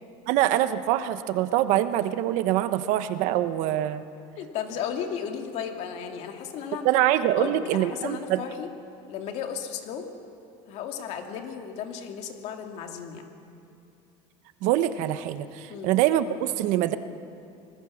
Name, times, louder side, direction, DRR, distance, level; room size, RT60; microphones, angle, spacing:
voice 1, 0.3-4.0 6.8-8.4 14.6-17.0, right 13 dB, 60° right, 11 dB, 1.1 m, -24 dB
voice 2, 4.4-6.9 7.4-8.7 9.1-10.1 10.7-13.3 15.7-15.9, left 8 dB, 50° left, 4 dB, 2.5 m, -34 dB
26.0 x 20.0 x 7.3 m, 2.6 s
cardioid pair, 155°, 14 cm